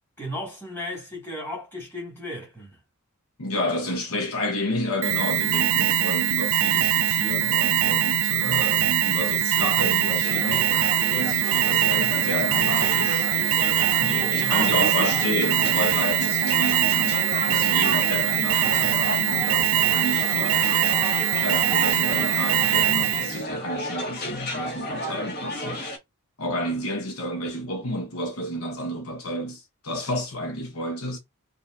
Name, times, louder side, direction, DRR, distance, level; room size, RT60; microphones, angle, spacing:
voice 1, 0.2-2.8 14.4-15.2, equal, 10° left, 2.4 m, -34 dB
voice 2, 3.4-13.3 14.0-20.8 21.4-25.9 26.4-31.2, left 1 dB, 70° left, 1.1 m, -30 dB
Alarm, 5.0-23.4, right 11 dB, 60° right, 0.4 m, -22 dB
sound 1, 10.2-26.0, equal, 45° left, 1.9 m, -33 dB
5.2 x 2.7 x 2.7 m
head